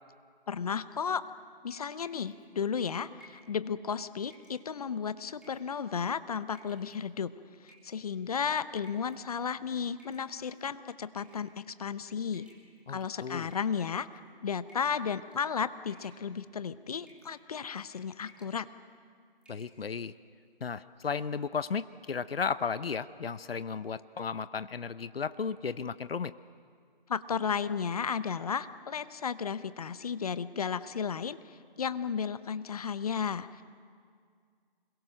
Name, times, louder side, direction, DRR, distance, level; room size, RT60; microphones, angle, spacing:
voice 1, 0.5-1.2 1.6-7.3 7.6-12.5 12.9-14.1 14.4-18.7 27.1-31.4 31.8-33.6, left 6 dB, 40° left, 14 dB, 0.8 m, -34 dB
sound 1, 2.0-2.4 3.2-3.5 4.3-4.6 5.4-5.7 6.5-6.9 7.7-8.1 8.8-9.2 10.0-10.6 11.2-11.5 12.3-13.0 13.5-14.1 14.7-15.0 15.3-15.6 15.9-16.4 17.1-17.3 17.7-17.9 18.2-18.6 18.9-19.0 19.4-19.7, equal, 5° right, 2.6 m, -60 dB
voice 2, 12.9-13.5 19.5-20.1 20.6-26.3, left 6 dB, 75° left, 14 dB, 0.9 m, -34 dB
27.5 x 22.0 x 6.5 m, 2.1 s
figure-of-eight pair, 155°, 29 cm